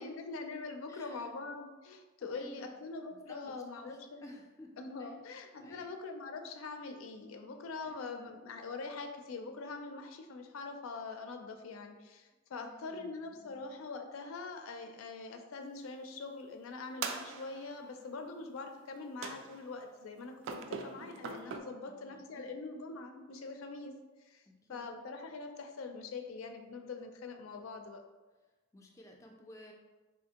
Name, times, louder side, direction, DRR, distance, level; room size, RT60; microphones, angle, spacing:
voice 1, 0.0-4.2 4.8-23.9 24.2-24.4 24.7-28.0, left 3 dB, 90° left, 5 dB, 0.4 m, -43 dB
voice 2, 0.9-1.3 2.2-2.7 3.1-5.2 5.6-5.9 7.8-8.3 12.5-13.6 21.8-22.5 24.5-24.9 28.7-29.7, left 1 dB, 15° left, 0 dB, 0.3 m, -55 dB
sound 1, 17.0-17.8 19.2-19.8 20.4-21.6, right 5 dB, 70° right, 0.3 m, -41 dB
3.3 x 2.7 x 2.8 m, 1.2 s
head